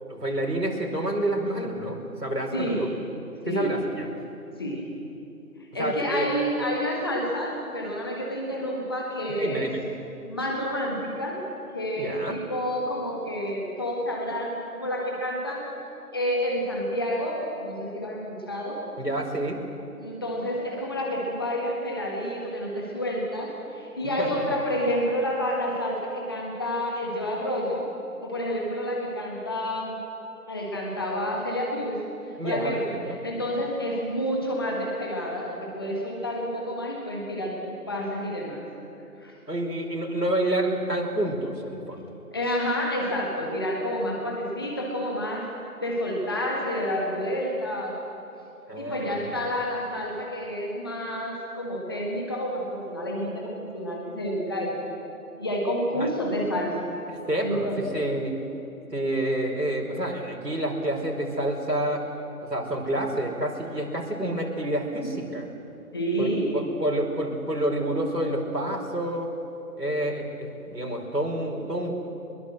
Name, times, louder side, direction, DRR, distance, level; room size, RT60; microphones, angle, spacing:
voice 1, 0.1-2.9 3.5-4.1 5.8-6.3 9.4-9.8 12.0-12.4 19.0-19.6 24.2-24.5 32.4-33.2 39.5-42.1 48.7-49.5 55.9-56.1 57.3-57.7 57.9-58.3 58.9-62.1 62.4-65.5 66.2-69.3 69.8-71.9, right 1 dB, 85° right, 0 dB, 5.1 m, -28 dB
voice 2, 2.5-2.9 3.5-3.7 4.6-4.8 5.7-9.7 10.3-11.4 11.7-15.7 16.1-18.8 20.0-27.9 28.2-30.0 30.5-32.0 32.4-38.6 39.2-39.3 42.3-45.5 45.8-48.0 48.8-54.8 55.4-56.9 57.4-57.8 65.9-66.5, equal, 15° left, -2 dB, 1.6 m, -29 dB
23.5 x 21.0 x 7.7 m, 2.8 s
figure-of-eight pair, 165°, 47 cm